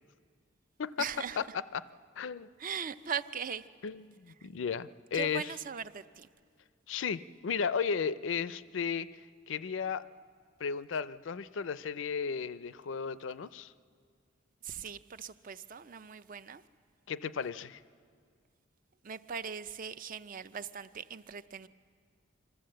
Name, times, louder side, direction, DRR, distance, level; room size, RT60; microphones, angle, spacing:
voice 1, 1.0-1.5 2.6-3.7 4.4-4.5 5.1-6.3 14.6-16.6 19.0-21.7, right 7 dB, 45° right, 0.5 m, -40 dB
voice 2, 2.2-2.5 3.8-5.5 6.9-9.1 9.5-10.0 10.6-13.7 17.1-17.8, left 6 dB, 75° left, 0.5 m, -34 dB
26.0 x 13.5 x 7.7 m
head